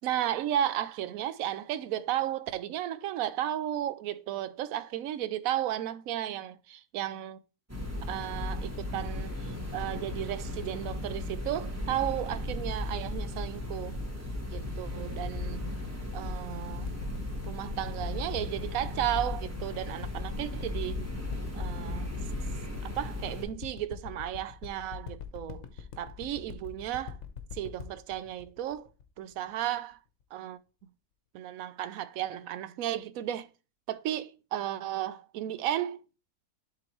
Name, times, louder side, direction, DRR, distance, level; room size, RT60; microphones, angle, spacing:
voice 1, 0.0-7.4 8.1-14.0 14.5-15.8 16.1-17.0 17.5-21.1 21.5-22.1 22.8-25.7 26.0-27.2 27.5-28.9 29.2-30.0 30.3-30.6 31.3-33.5 33.9-36.0, right 12 dB, 70° right, 0.9 m, -34 dB
sound 1, 7.7-23.4, left 2 dB, 10° right, 1.2 m, -36 dB
sound 2, 16.9-29.6 30.2-30.3, left 7 dB, 55° left, 1.1 m, -43 dB
11.0 x 3.9 x 3.1 m
omnidirectional pair, 1.7 m